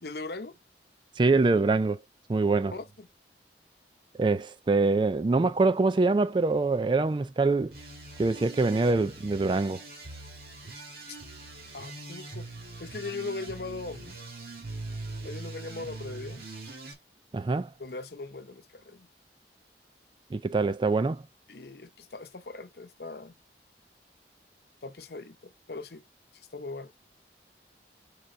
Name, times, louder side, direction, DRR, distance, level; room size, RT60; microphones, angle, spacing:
voice 1, 0.0-0.6 2.7-3.1 11.7-12.5 12.8-14.1 15.2-16.4 17.8-19.1 21.5-23.4 24.8-26.0 26.3-26.9, left 3 dB, 65° left, 0.8 m, -39 dB
voice 2, 1.2-2.0 2.3-2.7 4.2-7.7 8.2-9.8 17.3-17.7 20.3-21.2, right 3 dB, 25° right, 0.3 m, -24 dB
sound 1, 7.7-16.9, right 2 dB, 55° right, 2.5 m, -42 dB
5.2 x 4.7 x 4.3 m
head